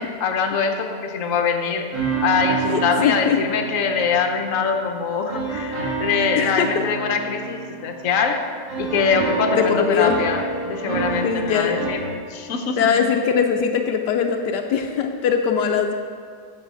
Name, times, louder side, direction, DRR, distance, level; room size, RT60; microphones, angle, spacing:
voice 1, 0.0-1.9 2.2-8.4 8.8-12.9, left 5 dB, 55° left, 4 dB, 1.2 m, -23 dB
sound 1, 1.9-4.6 5.3-8.3 8.7-11.9, right 5 dB, 75° right, 2.8 m, -28 dB
voice 2, 2.7-3.4 6.4-6.8 9.5-10.2 11.2-11.8 12.8-15.9, left 7 dB, 80° left, 4 dB, 1.3 m, -21 dB
8.2 x 6.3 x 7.6 m, 2.2 s
omnidirectional pair, 1.8 m